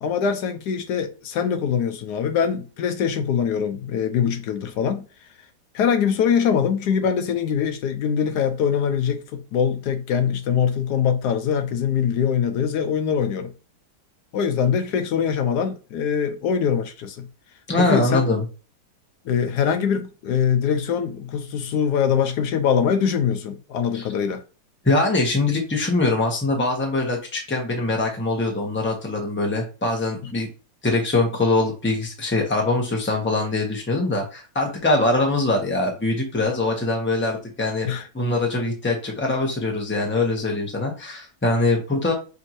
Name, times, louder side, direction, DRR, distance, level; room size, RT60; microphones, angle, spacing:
voice 1, 0.0-5.1 5.7-13.5 14.3-17.3 17.8-18.2 19.3-24.4 37.9-38.1, left 7 dB, 75° left, 1.1 m, -23 dB
voice 2, 17.7-18.4 23.9-24.0 24.8-30.5 30.8-37.9 38.1-42.1, left 2 dB, 10° left, 0.9 m, -23 dB
6.3 x 2.6 x 3.0 m
omnidirectional pair, 1.8 m